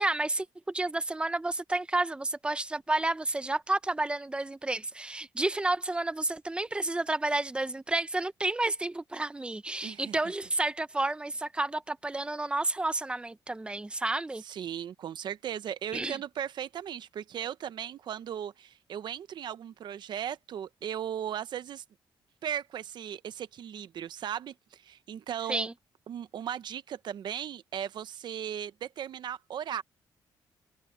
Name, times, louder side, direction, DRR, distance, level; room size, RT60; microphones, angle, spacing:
voice 1, 0.0-14.4 15.9-16.2 25.5-25.7, right 2 dB, 10° right, 1.0 m, -31 dB
voice 2, 9.8-10.1 14.4-21.8 22.4-25.7 26.1-29.8, right 9 dB, 65° right, 0.9 m, -37 dB
cardioid pair, 100°, 8 cm